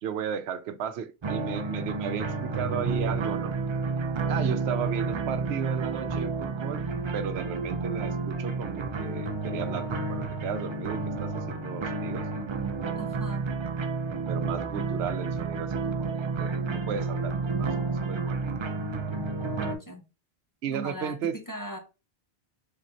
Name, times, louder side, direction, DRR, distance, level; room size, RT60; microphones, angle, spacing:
voice 1, 0.0-3.5 4.3-6.8 7.1-12.3 14.3-17.7 18.0-18.4 20.6-21.3, right 8 dB, 90° right, 0.8 m, -35 dB
sound 1, 1.2-19.7, right 4 dB, 45° right, 0.4 m, -30 dB
voice 2, 12.9-13.5 19.6-20.0 20.7-21.8, right 1 dB, 20° left, 0.7 m, -39 dB
4.1 x 3.7 x 2.5 m
omnidirectional pair, 1.0 m